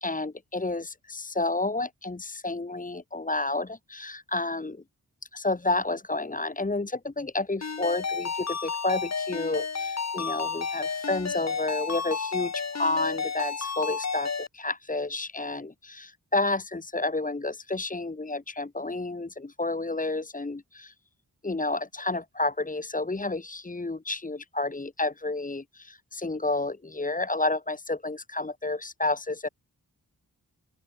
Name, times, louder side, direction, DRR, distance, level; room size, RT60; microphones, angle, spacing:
voice 1, 0.0-4.8 5.3-20.9 21.4-29.5, left 2 dB, 20° left, 2.5 m, -30 dB
Ringtone, 7.6-14.5, left 5 dB, 45° left, 3.3 m, -31 dB
open air
wide cardioid pair, 160°, 35 cm